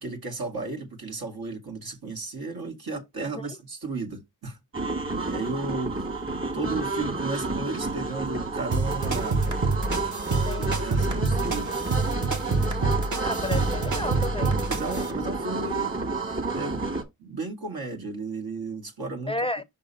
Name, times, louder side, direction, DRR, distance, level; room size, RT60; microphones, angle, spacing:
voice 1, 0.0-4.6 5.3-6.2 6.5-9.5 10.6-11.8 14.7-19.3, right 3 dB, 70° right, 2.1 m, -34 dB
sound 1, 4.7-17.0, right 3 dB, 35° right, 2.2 m, -30 dB
sound 2, 8.7-15.1, right 3 dB, 50° right, 1.3 m, -27 dB
voice 2, 10.5-10.9 13.2-14.6 19.3-19.6, left 2 dB, 15° left, 0.5 m, -32 dB
5.7 x 3.7 x 5.4 m
cardioid pair, 60°, 38 cm